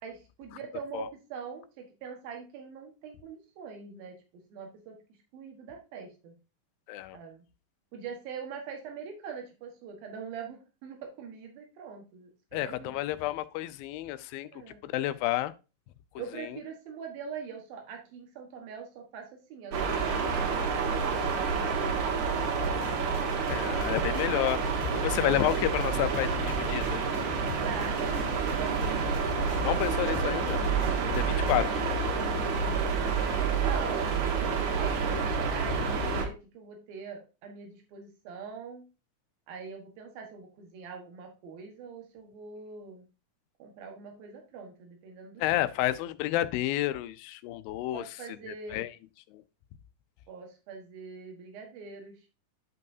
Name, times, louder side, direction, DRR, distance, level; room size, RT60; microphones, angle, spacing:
voice 1, 0.0-4.1 4.5-5.0 5.3-6.3 7.1-7.4 7.9-13.0 14.5-14.8 16.2-23.2 27.6-29.2 29.9-30.4 31.3-31.7 33.4-38.9 39.5-43.1 43.6-45.7 47.9-48.8 50.3-52.2, right 6 dB, 90° right, 3.3 m, -43 dB
voice 2, 12.5-14.5 14.8-15.5 16.4-16.6 23.5-24.6 24.9-27.0 29.6-30.6 31.2-31.7 45.4-48.0 48.5-48.9 49.3-49.4, left 14 dB, 90° left, 2.4 m, -30 dB
sound 1, 19.7-36.3, right 5 dB, 60° right, 2.6 m, -29 dB
sound 2, 22.6-31.7, left 7 dB, 70° left, 2.4 m, -44 dB
11.5 x 5.4 x 2.7 m
omnidirectional pair, 4.1 m